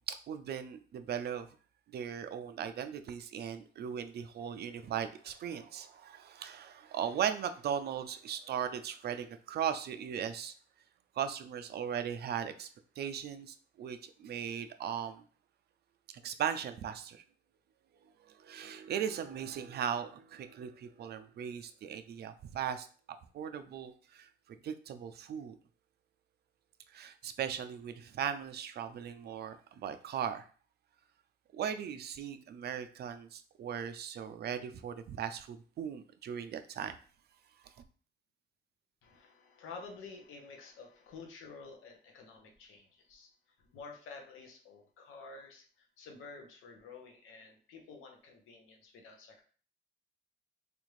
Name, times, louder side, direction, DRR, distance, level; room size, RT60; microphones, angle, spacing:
voice 1, 0.0-1.5 1.9-10.5 11.2-12.7 13.0-15.2 16.1-17.2 18.2-22.9 23.3-25.6 26.9-30.5 31.5-36.9 37.6-37.8, right 8 dB, 55° right, 9 dB, 0.4 m, -38 dB
voice 2, 39.0-43.3 43.6-49.4, left 4 dB, 90° left, 2 dB, 0.8 m, -50 dB
3.4 x 2.5 x 3.1 m, 0.41 s
cardioid pair, 90°, 20 cm